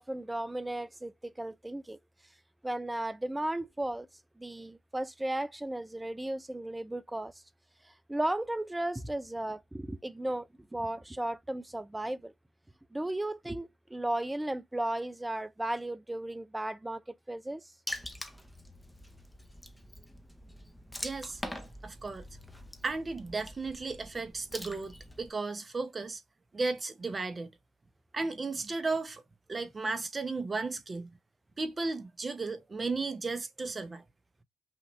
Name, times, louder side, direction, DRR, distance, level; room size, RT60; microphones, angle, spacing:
voice 1, 0.0-2.0 2.6-4.1 4.4-7.3 7.8-12.3 12.9-17.7, right 1 dB, 10° right, 0.5 m, -35 dB
Water / Splash splatter, 17.9-25.3, left 1 dB, 5° left, 0.9 m, -44 dB
voice 2, 21.0-21.4 21.8-22.2 22.8-26.2 26.5-27.5 28.1-29.2 29.5-31.1 31.6-34.0, right 3 dB, 30° right, 1.0 m, -34 dB
5.7 x 2.6 x 3.2 m
supercardioid pair, 60°, 0 cm